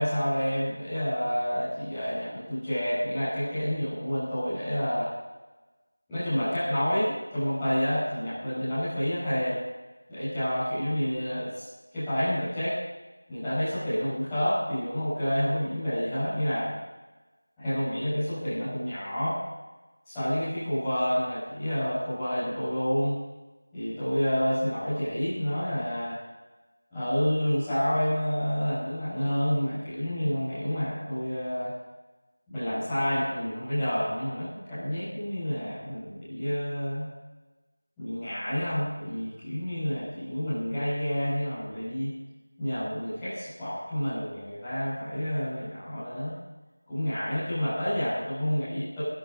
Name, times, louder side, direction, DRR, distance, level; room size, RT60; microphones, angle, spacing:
voice 1, 0.0-5.1 6.1-9.6 10.1-11.6 11.9-12.8 13.3-16.7 17.6-19.4 20.0-23.2 23.7-26.2 26.9-31.7 32.5-37.1 38.0-42.1 42.6-46.3 46.9-49.0, equal, 5° left, -22 dB, 5.7 m, -29 dB
23.0 x 10.5 x 5.2 m, 1.1 s
figure-of-eight pair, 175°, 0 cm